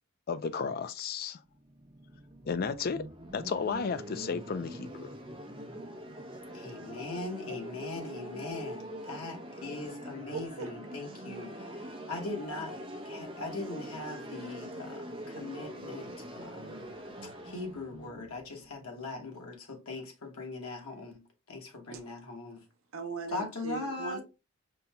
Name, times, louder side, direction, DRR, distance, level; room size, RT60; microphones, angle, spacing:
voice 1, 0.3-1.4 2.5-3.1 3.3-5.1, left 5 dB, 45° left, 0.3 m, -33 dB
sound 1, 1.5-19.3, equal, 25° right, 0.7 m, -44 dB
voice 2, 6.5-12.7 13.0-16.8 17.2-22.6 23.3-24.2, left 2 dB, 90° left, 1.2 m, -40 dB
voice 3, 10.3-10.7 22.9-24.2, right 4 dB, 70° right, 0.6 m, -39 dB
5.3 x 2.2 x 2.8 m
head